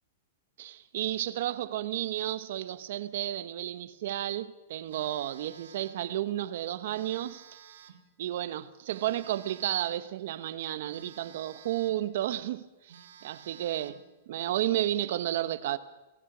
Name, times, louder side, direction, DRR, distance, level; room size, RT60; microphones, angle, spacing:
voice 1, 0.6-7.4 8.2-12.9 13.2-14.0 14.3-15.8, right 13 dB, 50° right, 1.1 m, -32 dB
Telephone, 4.9-6.1 6.9-8.1 8.9-10.1 10.9-12.1 12.5-12.6 12.9-14.1, right 8 dB, 85° right, 3.4 m, -53 dB
27.0 x 18.5 x 6.2 m
supercardioid pair, 175°, 0 cm